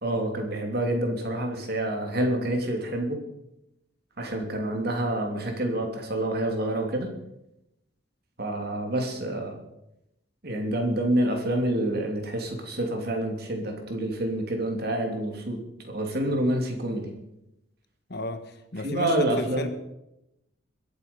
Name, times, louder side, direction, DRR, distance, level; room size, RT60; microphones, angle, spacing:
voice 1, 0.0-3.2 4.2-7.1 8.4-9.6 10.4-17.1 18.8-19.7, right 1 dB, 50° right, 3 dB, 2.9 m, -28 dB
voice 2, 18.1-19.7, left 1 dB, 55° left, 9 dB, 1.4 m, -33 dB
22.5 x 8.4 x 5.4 m, 0.87 s
head